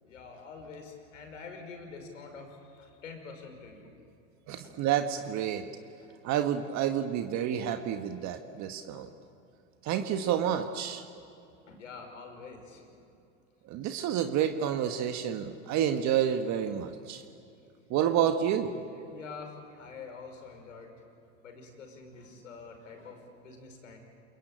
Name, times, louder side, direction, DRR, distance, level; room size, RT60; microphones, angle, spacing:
voice 1, 0.0-3.9 4.6-4.7 6.0-6.1 8.9-9.0 11.7-13.1 17.1-17.2 19.0-20.9 21.4-24.0, left 4 dB, 85° left, 4 dB, 5.7 m, -46 dB
voice 2, 4.5-5.6 6.2-9.1 9.8-11.0 13.7-17.2 17.9-18.8, right 9 dB, 50° right, 6 dB, 1.6 m, -29 dB
28.5 x 22.0 x 8.9 m, 2.6 s
hypercardioid pair, 90°, 37 cm